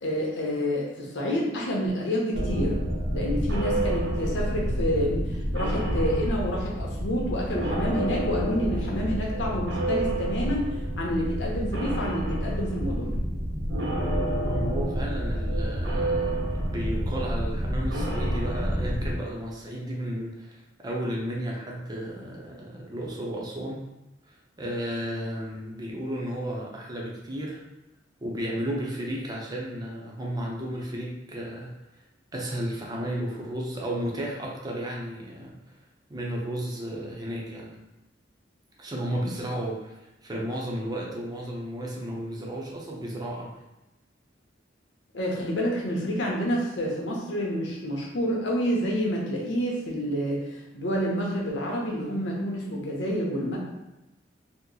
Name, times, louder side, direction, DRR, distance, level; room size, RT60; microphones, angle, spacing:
voice 1, 0.0-2.8 3.1-13.2 45.1-53.6, equal, 90° left, -2 dB, 0.8 m, -28 dB
sound 1, 2.3-19.2, right 1 dB, 70° right, 0.7 m, -28 dB
voice 2, 14.4-16.4 16.7-23.8 24.3-27.6 28.2-31.7 32.3-35.6 36.1-37.8 38.8-43.5, equal, 20° right, -2 dB, 0.6 m, -33 dB
2.9 x 2.1 x 3.7 m, 0.96 s
head